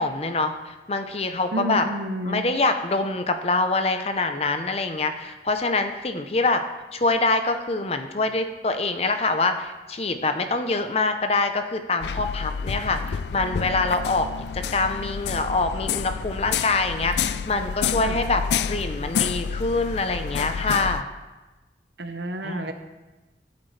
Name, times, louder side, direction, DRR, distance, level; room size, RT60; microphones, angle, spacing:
voice 1, 0.0-1.8 2.2-6.6 6.9-14.3 14.5-18.4 18.7-21.1 22.4-22.7, left 3 dB, 35° left, 7 dB, 0.7 m, -25 dB
voice 2, 1.5-2.5 18.0-18.2 22.0-22.7, right 1 dB, 75° right, 7 dB, 1.0 m, -30 dB
sound 1, 12.0-21.0, left 7 dB, 75° left, 0.4 m, -29 dB
15.5 x 8.4 x 3.3 m, 1.2 s
head